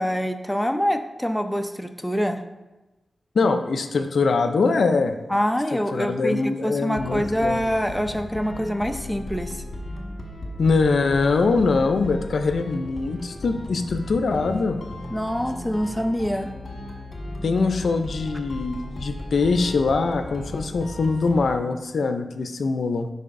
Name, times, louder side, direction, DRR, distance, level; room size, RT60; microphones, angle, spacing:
voice 1, 0.0-2.4 5.3-9.6 15.1-16.5, equal, 5° left, 6 dB, 0.6 m, -25 dB
voice 2, 3.3-5.2 5.9-7.6 10.6-14.8 17.4-23.1, left 4 dB, 80° left, 7 dB, 0.5 m, -23 dB
sound 1, 7.0-21.5, left 1 dB, 60° left, 1.3 m, -36 dB
11.0 x 5.3 x 2.6 m, 1.1 s
cardioid pair, 55°, 0 cm